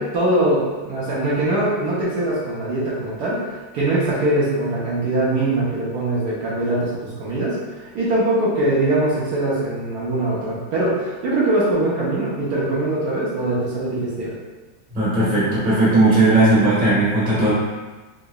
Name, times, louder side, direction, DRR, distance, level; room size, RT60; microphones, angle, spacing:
voice 1, 0.0-7.6 7.9-14.3, right 1 dB, 65° right, -7 dB, 1.2 m, -22 dB
voice 2, 14.9-17.5, right 2 dB, 5° right, -10 dB, 0.8 m, -17 dB
3.8 x 3.0 x 2.2 m, 1.3 s
omnidirectional pair, 2.0 m